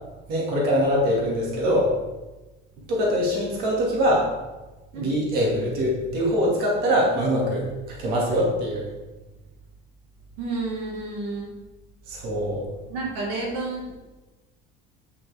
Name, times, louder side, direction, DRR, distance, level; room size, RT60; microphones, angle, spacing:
voice 1, 0.3-1.9 2.9-4.3 4.9-8.9 12.1-12.6, equal, 45° right, -3 dB, 2.3 m, -23 dB
voice 2, 10.4-11.5 12.9-13.9, right 3 dB, 80° right, -2 dB, 1.9 m, -30 dB
8.9 x 6.1 x 3.5 m, 1.1 s
cardioid pair, 180°, 21 cm